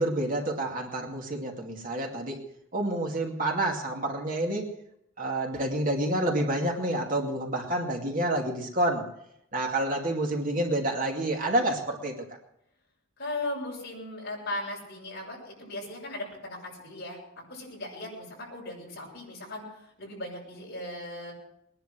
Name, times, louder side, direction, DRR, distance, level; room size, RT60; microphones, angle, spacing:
voice 1, 0.0-2.4 2.7-4.7 5.2-9.0 9.5-12.1, right 1 dB, 40° right, 1 dB, 2.3 m, -28 dB
voice 2, 13.2-17.2 17.5-21.3, left 1 dB, 50° left, -2 dB, 7.4 m, -37 dB
21.5 x 11.0 x 6.2 m, 0.76 s
head